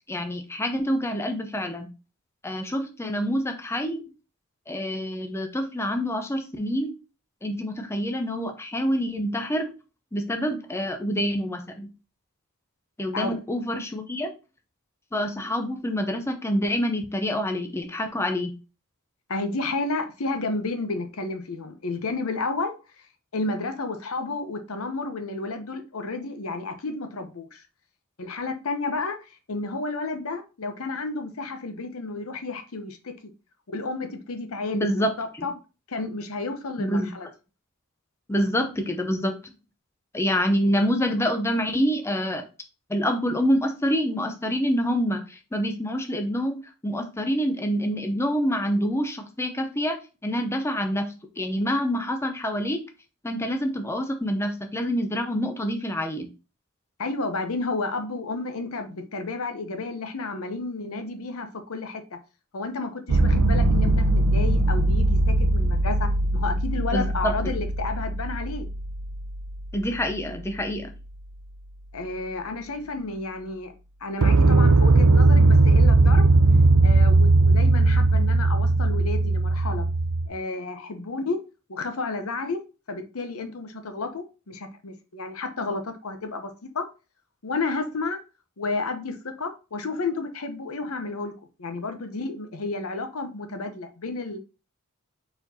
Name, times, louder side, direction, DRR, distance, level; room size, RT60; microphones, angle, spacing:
voice 1, 0.1-1.9 2.4-4.0 4.7-6.9 7.4-9.7 10.1-11.9 13.0-14.3 15.1-18.5 34.7-35.1 35.4-35.5 36.8-37.1 38.3-39.4 40.1-42.5 42.9-52.8 53.2-56.3 66.9-67.3 69.7-70.9, equal, 10° left, 5 dB, 0.6 m, -26 dB
voice 2, 19.3-23.1 23.3-27.6 28.2-33.1 33.7-35.5 35.9-37.3 57.0-62.0 62.5-68.7 71.9-73.7 74.0-76.3 76.8-79.9 80.3-81.4 81.7-82.6 82.9-86.8 87.4-88.2 88.6-91.3 91.6-94.4, left 3 dB, 70° left, 7 dB, 0.8 m, -31 dB
sound 1, 63.1-70.9 74.2-80.3, right 2 dB, 80° right, 0.5 m, -19 dB
4.4 x 4.4 x 2.7 m, 0.31 s
head